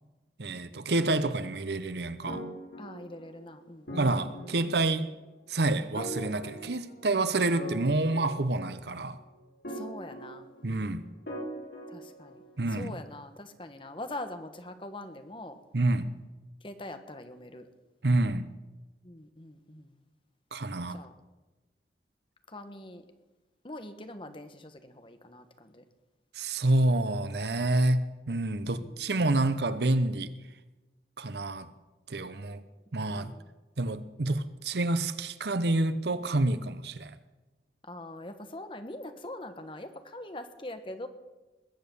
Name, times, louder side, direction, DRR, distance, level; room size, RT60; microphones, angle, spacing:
voice 1, 0.4-2.4 4.0-5.1 5.5-9.2 10.6-11.0 12.6-13.0 15.7-16.1 18.0-18.5 20.5-21.0 26.4-30.3 31.2-31.7 32.1-32.6 32.9-33.3 33.8-37.1, right 2 dB, 70° right, 0.8 m, -28 dB
sound 1, 2.3-3.5 3.9-5.0 6.0-7.2 7.6-9.0 9.6-10.8 11.3-12.7, right 1 dB, 65° left, 5.6 m, -41 dB
voice 2, 2.8-4.0 9.7-10.5 11.9-12.4 12.7-15.6 16.6-17.7 19.0-19.9 20.9-21.1 22.5-23.0 23.6-25.8 28.8-29.1 32.9-33.5 37.8-41.1, left 1 dB, 30° left, 1.2 m, -43 dB
21.0 x 8.6 x 7.0 m
head